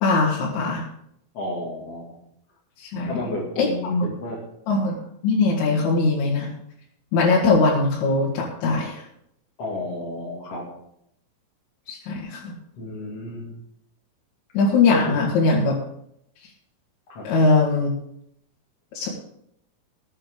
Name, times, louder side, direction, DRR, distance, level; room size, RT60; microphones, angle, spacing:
voice 1, 0.0-0.8 2.8-3.2 3.6-4.1 4.7-5.0 5.2-6.5 7.1-9.0 11.9-12.5 14.5-15.8 17.2-17.9 19.0-19.1, left 3 dB, 65° left, -4 dB, 4.0 m, -21 dB
voice 2, 1.3-2.2 3.0-4.4 9.6-10.7 12.8-13.6 15.1-15.2 17.1-17.3, left 2 dB, 40° left, -4 dB, 2.5 m, -32 dB
19.0 x 9.0 x 3.8 m, 0.74 s
omnidirectional pair, 6.0 m